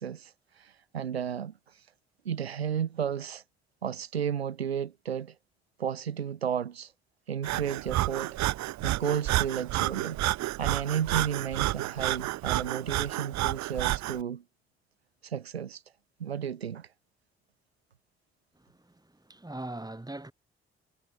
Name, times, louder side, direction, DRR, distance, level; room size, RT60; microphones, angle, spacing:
voice 1, 0.0-1.5 2.2-3.4 3.8-5.3 5.8-6.9 7.3-8.4 8.8-14.4 15.2-15.8 16.2-16.9, right 8 dB, 85° right, 1.2 m, -33 dB
Breathing, 7.4-14.2, right 16 dB, 65° right, 2.4 m, -30 dB
voice 2, 18.6-18.9 19.2-20.3, right 2 dB, 10° right, 5.3 m, -40 dB
figure-of-eight pair, 40°, 30 cm